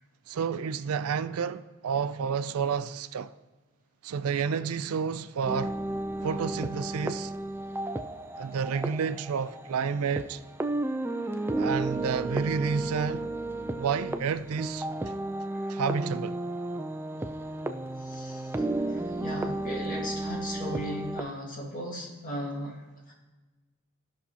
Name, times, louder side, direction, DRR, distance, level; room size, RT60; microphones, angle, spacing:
voice 1, 0.3-3.3 4.0-5.8 6.2-7.3 8.4-10.4 11.6-13.3 13.8-14.9 15.7-16.4, right 6 dB, 80° right, 0.4 m, -30 dB
sound 1, 5.4-21.2, right 2 dB, 10° right, 0.3 m, -33 dB
voice 2, 18.0-18.5 18.9-23.1, equal, 40° left, 2.0 m, -37 dB
15.5 x 5.8 x 2.8 m
head